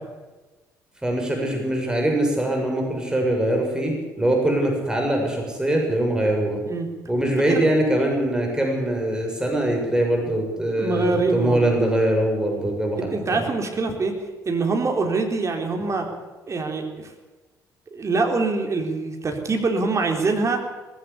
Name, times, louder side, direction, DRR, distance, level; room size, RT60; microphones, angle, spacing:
voice 1, 1.0-6.6 7.1-13.5, right 1 dB, 10° right, 1 dB, 7.0 m, -23 dB
voice 2, 10.8-11.6 13.0-14.1 14.5-16.1 16.5-17.1 17.9-20.6, right 3 dB, 35° right, 3 dB, 4.0 m, -24 dB
19.0 x 16.0 x 8.5 m, 1.2 s
figure-of-eight pair, 50°, 9 cm